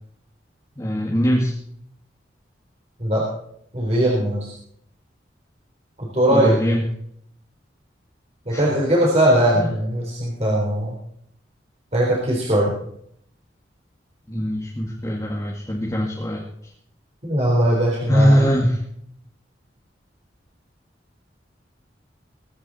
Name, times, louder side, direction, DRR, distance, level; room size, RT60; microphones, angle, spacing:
voice 1, 0.8-1.5 6.3-6.8 8.5-8.7 9.5-9.7 14.3-16.4 18.1-18.8, equal, 20° left, -3 dB, 2.0 m, -21 dB
voice 2, 3.7-4.5 6.0-6.8 8.5-11.0 11.9-12.7 17.2-18.5, right 1 dB, 35° right, -4 dB, 4.0 m, -20 dB
22.5 x 9.6 x 4.3 m, 0.68 s
head